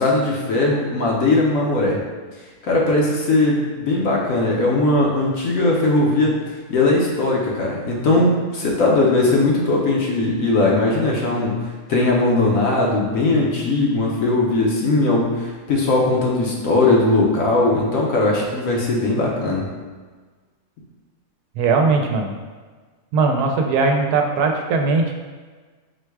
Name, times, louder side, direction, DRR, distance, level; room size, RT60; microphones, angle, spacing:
voice 1, 0.0-2.0 2.6-6.4 6.7-19.7, left 2 dB, 65° left, -3 dB, 1.0 m, -19 dB
voice 2, 21.6-22.3 23.1-25.1, right 4 dB, 85° right, 3 dB, 1.1 m, -19 dB
4.5 x 2.2 x 4.6 m, 1.4 s
omnidirectional pair, 1.6 m